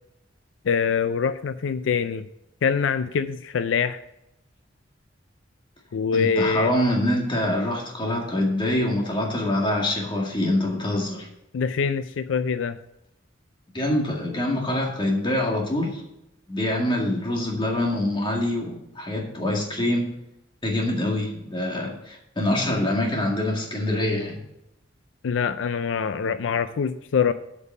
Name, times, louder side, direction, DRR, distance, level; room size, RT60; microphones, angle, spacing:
voice 1, 0.7-2.2 2.6-4.0 5.9-6.7 11.5-12.8 25.2-27.3, left 6 dB, 85° left, 12 dB, 0.4 m, -24 dB
voice 2, 6.1-11.3 13.7-16.0 16.5-20.1 20.6-24.4, left 1 dB, 25° left, 0 dB, 2.0 m, -25 dB
8.2 x 5.4 x 7.3 m, 0.83 s
head